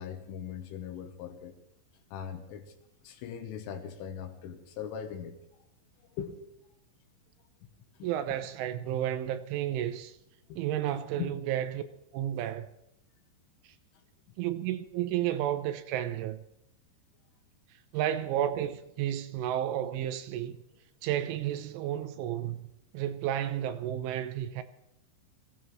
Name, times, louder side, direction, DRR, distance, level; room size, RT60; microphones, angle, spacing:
voice 1, 0.0-1.6 2.1-2.7 3.0-5.4 6.2-6.5 8.0-8.1 10.5-10.6 11.2-11.4, left 8 dB, 80° left, 3.6 m, -40 dB
voice 2, 8.0-10.1 10.6-11.8 12.1-12.7 14.4-16.4 17.9-20.6 21.0-22.7 22.9-24.6, right 11 dB, 80° right, 3.1 m, -32 dB
22.0 x 16.0 x 3.1 m
omnidirectional pair, 5.7 m